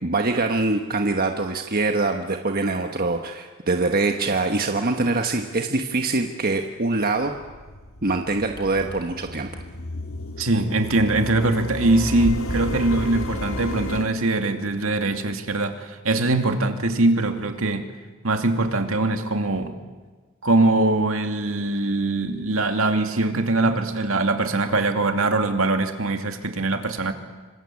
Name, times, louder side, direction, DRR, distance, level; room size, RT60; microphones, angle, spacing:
voice 1, 0.0-7.3 8.0-9.5, right 3 dB, 45° right, 4 dB, 1.4 m, -24 dB
sound 1, 6.8-14.1, left 1 dB, 65° left, 2.1 m, -32 dB
voice 2, 10.4-17.9 18.2-19.7 20.4-27.1, right 2 dB, 70° right, 6 dB, 2.6 m, -22 dB
27.0 x 25.5 x 8.5 m, 1.4 s
head